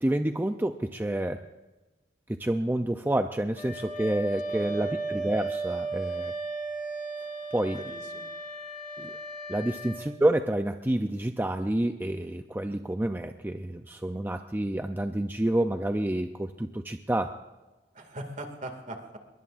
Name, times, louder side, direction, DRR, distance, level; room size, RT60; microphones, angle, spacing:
voice 1, 0.0-1.4 2.3-6.3 7.5-7.8 9.0-9.1 9.5-17.4, right 1 dB, 10° right, 6 dB, 0.5 m, -28 dB
Wind instrument woodwind instrument, 3.5-10.1, right 2 dB, 45° left, 2.1 m, -35 dB
voice 2, 4.5-4.9 7.2-7.3 7.7-8.3 17.9-19.2, right 1 dB, 45° right, 5 dB, 2.3 m, -41 dB
23.5 x 22.0 x 2.5 m, 1.2 s
head